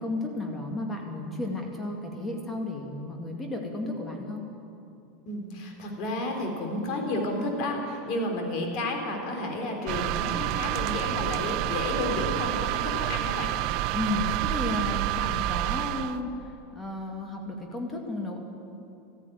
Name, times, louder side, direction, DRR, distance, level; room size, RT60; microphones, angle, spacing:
voice 1, 0.0-4.4 13.9-18.4, left 1 dB, 15° left, 1 dB, 2.1 m, -33 dB
voice 2, 5.3-13.5, left 1 dB, 50° left, 2 dB, 3.5 m, -31 dB
sound 1, 9.9-16.2, right 14 dB, 55° right, 0.6 m, -29 dB
14.0 x 11.0 x 9.2 m, 2.7 s
supercardioid pair, 125°, 0 cm